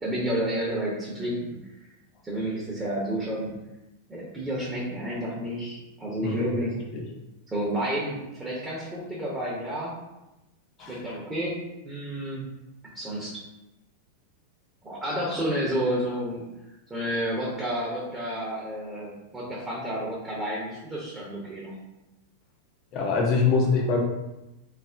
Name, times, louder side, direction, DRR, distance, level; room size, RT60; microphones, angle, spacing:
voice 1, 0.0-1.6 2.2-3.6 4.1-6.7 7.5-9.9 10.9-11.6 11.8-12.5 12.9-13.3 14.8-16.5 16.9-21.7, right 1 dB, 15° right, -6 dB, 0.6 m, -30 dB
voice 2, 22.9-24.0, left 4 dB, 35° left, 1 dB, 0.4 m, -23 dB
3.2 x 2.1 x 2.4 m, 0.96 s
figure-of-eight pair, 90°, 0 cm